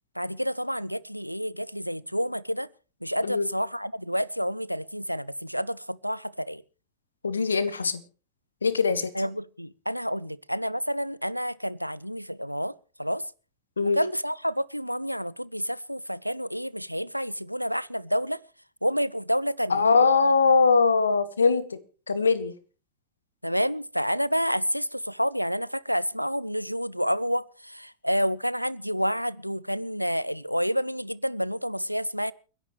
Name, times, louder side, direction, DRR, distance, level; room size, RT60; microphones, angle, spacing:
voice 1, 0.2-2.7 3.0-6.6 9.1-12.7 13.0-13.2 13.8-18.4 18.8-19.8 23.4-32.3, equal, 90° right, 0.6 m, -29 dB
voice 2, 7.2-8.0 8.6-9.1 13.8-14.0 19.7-21.8 22.1-22.5, left 4 dB, 75° left, 1.5 m, -21 dB
29.5 x 11.0 x 3.2 m
figure-of-eight pair, 90°, 0 cm